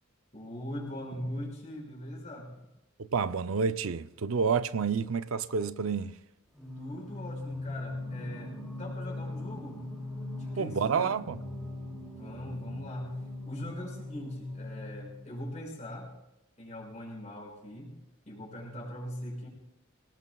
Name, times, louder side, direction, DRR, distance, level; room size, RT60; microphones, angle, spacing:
voice 1, 0.3-2.5 6.8-9.8 10.3-11.1 12.2-13.1 13.4-16.1 16.6-17.9 18.3-19.5, equal, 35° left, 5.8 m, -41 dB
voice 2, 3.0-6.2 10.6-11.4, right 5 dB, 75° right, 0.5 m, -29 dB
Singing, 6.5-15.5, left 2 dB, ahead, 2.7 m, -40 dB
26.0 x 18.5 x 2.3 m
head